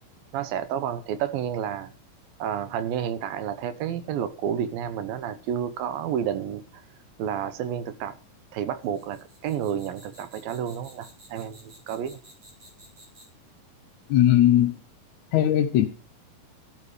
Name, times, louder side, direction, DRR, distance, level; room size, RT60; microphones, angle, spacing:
voice 1, 0.3-1.9 2.4-6.8 7.2-8.2 8.5-12.2, right 9 dB, 85° right, 2.8 m, -30 dB
sound 1, 8.8-13.5, right 1 dB, 40° right, 6.1 m, -52 dB
voice 2, 14.1-14.8 15.3-15.9, left 12 dB, 65° left, 2.0 m, -19 dB
13.0 x 10.5 x 5.0 m
omnidirectional pair, 4.0 m